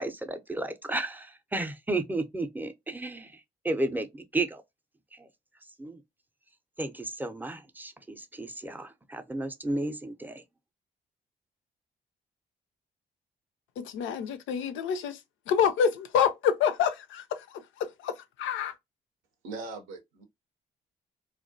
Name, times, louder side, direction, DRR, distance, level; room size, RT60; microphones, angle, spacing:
voice 1, 0.0-4.6 5.1-5.3 5.8-6.0 6.8-10.4, right 2 dB, 10° right, 0.5 m, -33 dB
voice 2, 13.8-18.7, left 7 dB, 70° left, 0.4 m, -28 dB
voice 3, 19.4-20.2, right 3 dB, 75° right, 0.7 m, -40 dB
2.3 x 2.1 x 2.6 m
hypercardioid pair, 45°, 21 cm